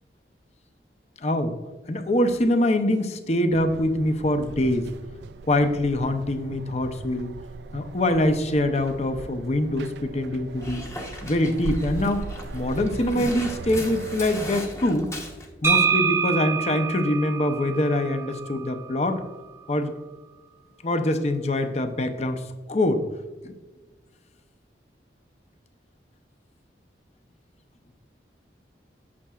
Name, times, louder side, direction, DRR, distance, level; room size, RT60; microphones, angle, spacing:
voice 1, 1.2-1.5 1.9-4.9 5.5-7.3 7.7-10.9 11.2-15.1 15.6-19.2 19.7-19.9 20.8-22.4 22.7-23.0 23.4-23.5, left 1 dB, 35° left, 8 dB, 0.6 m, -24 dB
sound 1, 3.5-14.5, right 4 dB, 70° right, 0.3 m, -39 dB
Dog, 10.6-15.5, left 1 dB, 15° left, 0.9 m, -37 dB
sound 2, 15.6-19.4, right 6 dB, 15° right, 0.6 m, -26 dB
8.4 x 7.3 x 2.4 m, 1.3 s
head